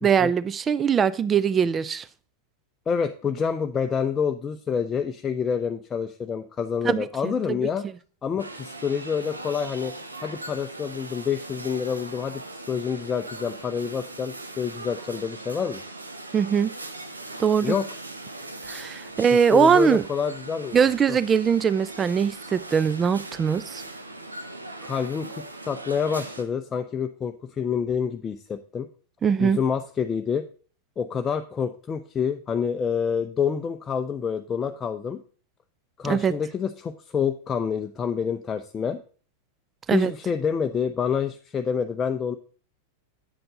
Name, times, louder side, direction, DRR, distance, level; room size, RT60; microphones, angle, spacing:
voice 1, 0.0-2.0 6.8-7.7 16.3-16.7 17.4-17.8 18.7-20.0 20.7-23.8 29.2-29.6 36.0-36.3 39.9-40.1, right 7 dB, 20° right, 0.5 m, -21 dB
voice 2, 2.9-7.8 8.2-9.9 10.2-12.4 12.7-15.8 17.6-17.8 19.5-21.2 24.8-28.9 29.4-30.4 31.0-35.2 36.0-39.0 39.9-42.4, left 7 dB, 20° left, 0.6 m, -27 dB
sound 1, 8.4-26.4, right 2 dB, 80° right, 1.1 m, -40 dB
9.5 x 7.8 x 3.8 m
figure-of-eight pair, 90°, 0 cm